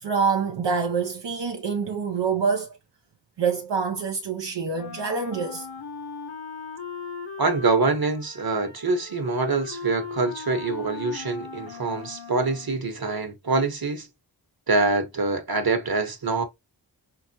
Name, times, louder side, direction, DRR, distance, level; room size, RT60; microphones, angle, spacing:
voice 1, 0.0-2.8 3.4-5.7, right 5 dB, 80° right, 0.6 m, -26 dB
Wind instrument woodwind instrument, 4.7-12.8, left 5 dB, 85° left, 1.2 m, -39 dB
voice 2, 7.4-14.1 14.7-16.4, right 3 dB, 55° right, 1.3 m, -25 dB
5.8 x 2.1 x 2.8 m
wide cardioid pair, 55°, 42 cm